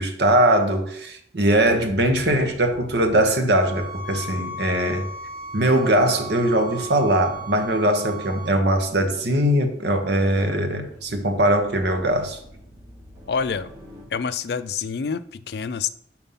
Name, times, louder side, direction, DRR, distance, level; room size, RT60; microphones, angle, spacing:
voice 1, 0.0-5.1 5.5-12.4, right 1 dB, 75° right, 1.0 m, -21 dB
sound 1, 1.6-14.1, left 2 dB, 25° right, 2.5 m, -45 dB
sound 2, 3.5-8.5, right 2 dB, 5° left, 1.4 m, -36 dB
voice 2, 13.3-13.7 14.1-15.9, left 6 dB, 65° left, 0.4 m, -27 dB
5.4 x 4.4 x 5.6 m
head